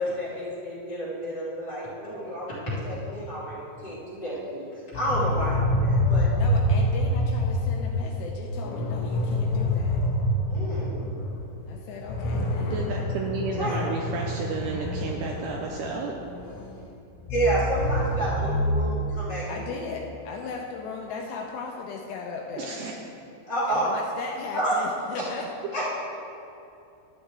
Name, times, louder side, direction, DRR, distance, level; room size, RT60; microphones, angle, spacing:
voice 1, 0.0-3.6 3.8-4.7 4.9-6.3 10.5-11.1 13.6-13.8 17.3-19.6 23.4-23.9 24.5-24.7 25.7-25.9, right 1 dB, 25° left, -10 dB, 2.7 m, -29 dB
sound 1, 4.9-11.4 11.7-11.8 12.1-16.7 17.2-18.8, left 1 dB, 65° left, 3.1 m, -26 dB
voice 2, 6.4-10.0 11.7-12.8 13.6-14.0 19.5-22.7 23.7-25.5, left 4 dB, 80° left, 0 dB, 2.6 m, -37 dB
voice 3, 12.6-16.1 22.6-23.0, right 4 dB, 80° right, 0 dB, 2.5 m, -32 dB
12.0 x 11.0 x 3.4 m, 2.7 s
omnidirectional pair, 5.5 m